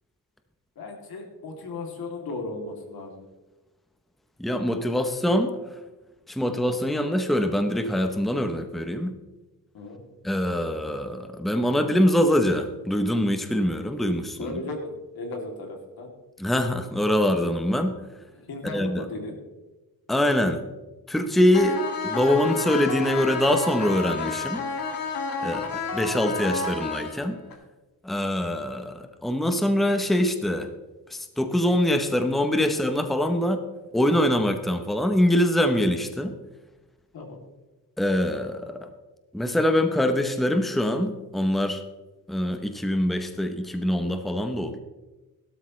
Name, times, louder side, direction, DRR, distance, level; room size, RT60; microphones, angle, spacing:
voice 1, 0.8-3.2 9.7-10.1 14.4-16.1 18.3-19.3 25.4-25.6 37.1-37.4, left 2 dB, 90° left, 2 dB, 2.8 m, -36 dB
voice 2, 4.4-5.8 6.3-9.1 10.2-14.6 16.4-18.0 18.6-19.1 20.1-20.6 21.1-24.6 25.4-25.7 25.9-27.4 28.0-30.7 31.1-33.6 33.9-36.3 38.0-38.9 39.3-41.8 42.3-44.8, left 1 dB, ahead, 7 dB, 0.7 m, -24 dB
sound 1, 21.5-27.5, left 4 dB, 75° left, 2.2 m, -30 dB
17.0 x 12.5 x 3.2 m, 1.1 s
wide cardioid pair, 180°, 36 cm